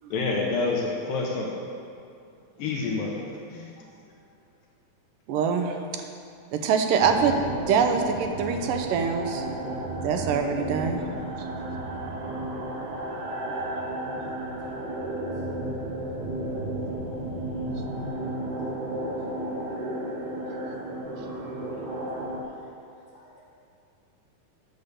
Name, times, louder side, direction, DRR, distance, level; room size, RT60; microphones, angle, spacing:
voice 1, 0.1-1.6 2.6-3.2 3.5-3.7, left 3 dB, 80° left, -2 dB, 2.7 m, -28 dB
voice 2, 5.3-6.1 6.5-7.4 7.7-9.5 10.0-11.4 18.5-18.7 20.6-20.8, right 6 dB, 80° right, 5 dB, 2.3 m, -25 dB
sound 1, 7.0-22.4, right 1 dB, 65° right, 2.3 m, -33 dB
voice 3, 14.4-15.0 17.3-17.4 21.1-21.2 21.5-23.4, equal, 40° left, -8 dB, 3.0 m, -57 dB
9.7 x 6.8 x 6.6 m, 2.4 s
omnidirectional pair, 4.0 m